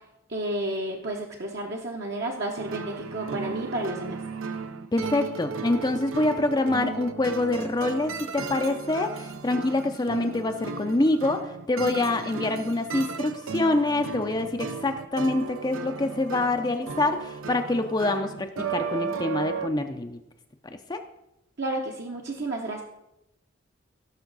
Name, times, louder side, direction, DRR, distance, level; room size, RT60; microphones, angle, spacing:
voice 1, 0.3-4.2 21.6-22.8, right 1 dB, 55° right, 0 dB, 0.9 m, -31 dB
sound 1, 2.6-19.7, right 5 dB, 85° right, 0.6 m, -35 dB
voice 2, 4.9-11.4 11.7-20.2 20.9-21.0, left 2 dB, 20° left, 6 dB, 0.4 m, -26 dB
16.5 x 6.2 x 4.0 m, 0.89 s
head